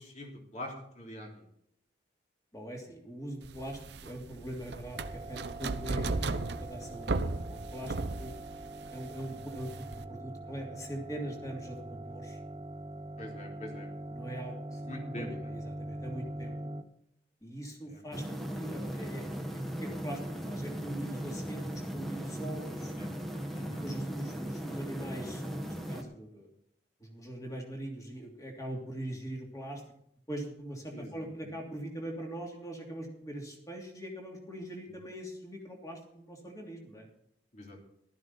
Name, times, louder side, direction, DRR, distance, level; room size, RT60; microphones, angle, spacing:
voice 1, 0.0-1.4 9.2-9.4 13.2-13.9 14.9-15.5 17.9-18.0 23.0-23.1 23.5-23.8 30.9-31.5 37.5-37.8, left 1 dB, 40° left, 0 dB, 3.5 m, -44 dB
voice 2, 2.5-8.3 8.9-12.4 14.1-14.8 15.1-16.7 17.4-22.9 23.5-26.5 27.0-29.8 30.3-37.1, right 1 dB, 20° left, 1 dB, 2.9 m, -42 dB
sound 1, 3.4-10.0, right 3 dB, 65° right, 0.7 m, -36 dB
sound 2, 4.9-16.8, right 1 dB, 25° right, 0.8 m, -43 dB
sound 3, 18.1-26.0, equal, ahead, 1.5 m, -38 dB
15.5 x 13.0 x 4.2 m, 0.71 s
head